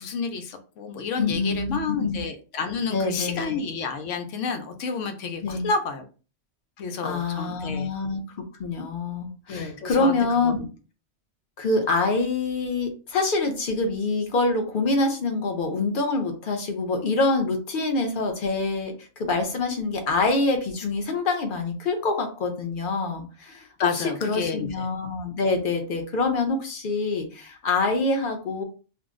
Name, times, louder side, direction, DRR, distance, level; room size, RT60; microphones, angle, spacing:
voice 1, 0.0-6.0 6.8-7.9 9.5-10.1 10.4-10.5 23.8-24.9, left 4 dB, 80° left, 6 dB, 0.9 m, -30 dB
voice 2, 1.2-2.2 2.9-3.6 5.4-5.7 7.0-8.2 8.6-10.7 11.6-23.7 23.9-28.6, left 3 dB, 50° left, 4 dB, 0.8 m, -25 dB
2.6 x 2.0 x 3.6 m, 0.35 s
omnidirectional pair, 1.3 m